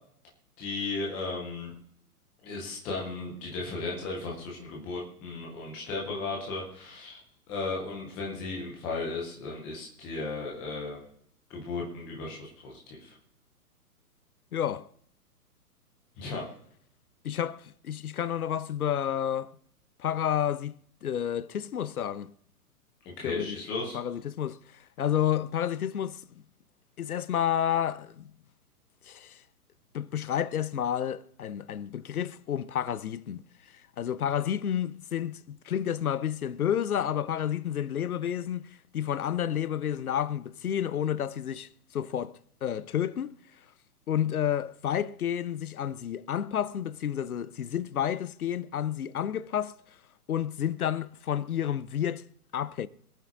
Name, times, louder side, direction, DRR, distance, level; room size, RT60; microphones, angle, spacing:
voice 1, 0.6-1.7 2.4-7.2 7.5-11.0 11.5-13.1 16.2-16.5 23.1-24.0, left 3 dB, 5° left, 0.4 m, -35 dB
voice 2, 14.5-14.9 17.2-19.6 20.0-22.3 23.2-23.6 23.9-24.6 25.0-26.4 27.0-28.3 29.1-29.4 29.9-33.4 34.0-38.7 38.9-43.3 44.1-49.7 50.3-52.2 52.5-52.9, left 10 dB, 70° left, 0.8 m, -30 dB
25.5 x 8.9 x 2.5 m
figure-of-eight pair, 120°, 45 cm